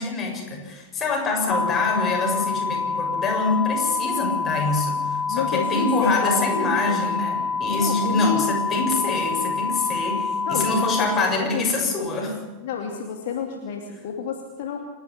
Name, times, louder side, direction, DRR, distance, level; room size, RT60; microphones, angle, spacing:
voice 1, 0.0-12.4 13.5-13.6, left 3 dB, 25° left, 0 dB, 7.1 m, -25 dB
sound 1, 1.5-11.1, left 4 dB, ahead, 2.4 m, -27 dB
voice 2, 5.3-7.0 7.7-8.9 10.5-11.7 12.6-14.8, left 7 dB, 55° left, 2 dB, 2.6 m, -30 dB
28.0 x 11.5 x 9.9 m, 1.3 s
figure-of-eight pair, 90°, 0 cm